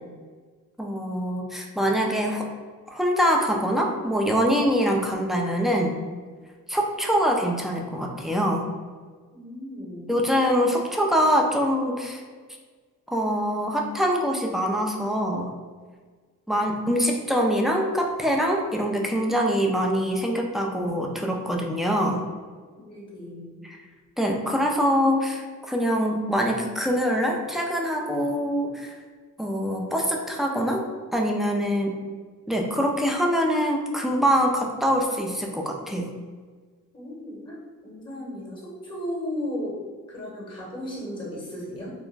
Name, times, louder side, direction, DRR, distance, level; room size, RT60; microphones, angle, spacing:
voice 1, 0.8-2.5 2.9-6.0 6.7-8.7 10.1-12.2 13.1-15.5 16.5-22.2 23.6-23.8 24.2-29.0 29.4-30.8 31.1-32.0 32.5-36.1, equal, ahead, 0 dB, 0.4 m, -24 dB
voice 2, 9.3-10.1 22.7-23.6 36.9-39.8 40.1-41.9, left 1 dB, 15° left, -4 dB, 1.0 m, -35 dB
2.4 x 2.1 x 3.1 m, 1.5 s
cardioid pair, 75°, 32 cm